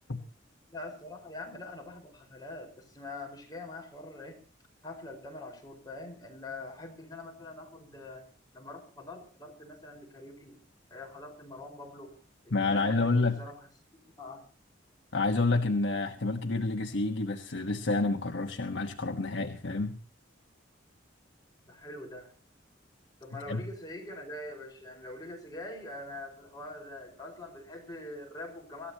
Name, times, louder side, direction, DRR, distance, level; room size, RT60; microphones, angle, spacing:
voice 1, 0.7-4.4 4.8-8.3 8.5-10.6 10.9-12.1 12.4-13.7 14.2-14.5 21.6-22.3 23.2-28.9, left 2 dB, 20° left, 1 dB, 5.0 m, -44 dB
voice 2, 12.5-13.4 15.1-20.0 23.5-23.6, left 3 dB, 75° left, 3 dB, 1.3 m, -29 dB
25.5 x 14.0 x 2.9 m, 0.38 s
head